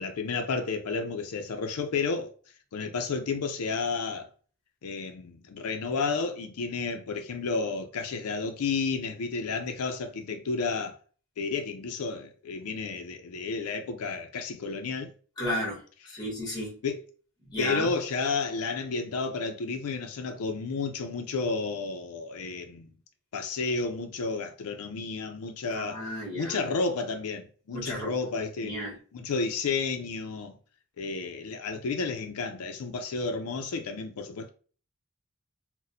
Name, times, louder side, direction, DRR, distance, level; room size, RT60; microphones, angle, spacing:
voice 1, 0.0-2.3 2.7-4.3 4.8-11.0 11.4-15.1 16.8-17.0 17.6-22.9 23.3-26.1 26.3-28.7 29.1-30.6 31.0-34.5, left 4 dB, 85° left, 0.4 m, -31 dB
voice 2, 15.4-16.8 17.5-17.9 25.7-26.6 27.7-28.1 28.6-29.0, left 1 dB, 20° left, 1.1 m, -33 dB
4.0 x 2.1 x 2.6 m
head